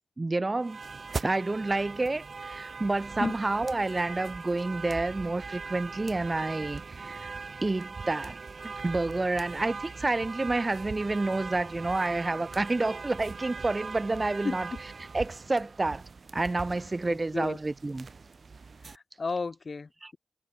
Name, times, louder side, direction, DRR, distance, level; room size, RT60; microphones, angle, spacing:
voice 1, 0.2-0.8 1.2-7.3 7.6-8.4 8.6-14.7 15.1-16.0 16.3-18.1 20.0-20.1, right 2 dB, 35° right, 1.3 m, -29 dB
sound 1, 0.6-19.0, right 4 dB, 60° right, 4.6 m, -41 dB
voice 2, 14.4-14.8 17.1-17.6 18.9-20.2, left 4 dB, 55° left, 6.9 m, -33 dB
cardioid pair, 50°, 0 cm